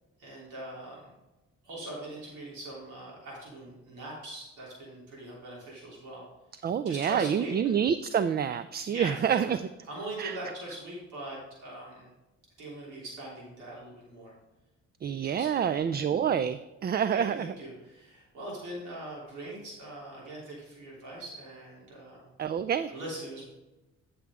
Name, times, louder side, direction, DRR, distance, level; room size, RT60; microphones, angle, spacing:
voice 1, 0.2-1.1 1.6-6.2 6.8-7.5 8.9-9.5 9.9-12.1 12.6-14.3 15.2-15.6 15.9-16.0 17.1-22.2 22.9-23.4, right 1 dB, 90° right, -5 dB, 3.3 m, -41 dB
voice 2, 6.6-9.7 10.2-10.4 15.0-17.5 22.4-22.9, right 8 dB, 35° right, 13 dB, 0.4 m, -28 dB
10.5 x 7.0 x 3.6 m, 1.0 s
cardioid pair, 90°, 30 cm